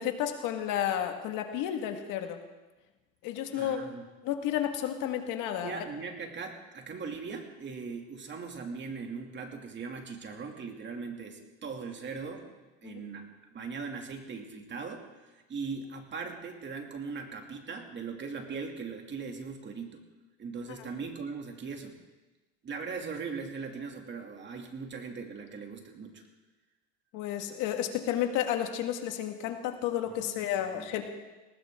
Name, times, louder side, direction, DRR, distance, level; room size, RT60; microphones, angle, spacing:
voice 1, 0.0-2.4 3.2-3.8 4.2-5.9 12.8-13.0 20.8-20.9 27.1-31.0, left 10 dB, 75° left, 5 dB, 2.0 m, -32 dB
voice 2, 3.5-4.0 5.6-12.5 12.8-20.0 20.4-22.0 22.6-26.2 30.0-30.3 30.6-30.9, right 5 dB, 35° right, 3 dB, 2.7 m, -40 dB
19.5 x 19.0 x 3.8 m, 1.2 s
supercardioid pair, 110°, 32 cm